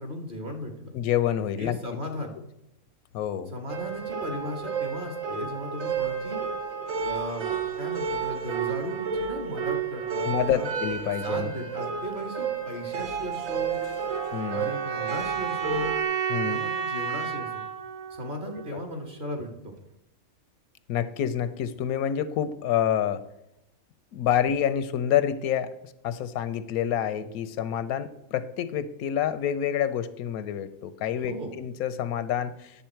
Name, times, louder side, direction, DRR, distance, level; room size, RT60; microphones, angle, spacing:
voice 1, 0.0-0.9 1.6-2.3 3.5-6.4 7.0-10.7 11.2-13.8 14.5-15.9 16.4-17.6 18.1-19.7 31.2-31.5, equal, 35° right, 3 dB, 1.6 m, -36 dB
voice 2, 0.9-1.8 3.1-3.5 10.3-11.5 14.3-14.7 16.3-16.6 18.7-18.8 20.9-23.2 24.1-32.7, left 9 dB, 85° left, 13 dB, 1.1 m, -28 dB
sound 1, 3.7-16.0, right 6 dB, 65° right, 1.3 m, -31 dB
sound 2, 14.1-19.1, right 7 dB, 90° right, 1.2 m, -32 dB
10.0 x 7.1 x 4.5 m, 0.86 s
omnidirectional pair, 1.5 m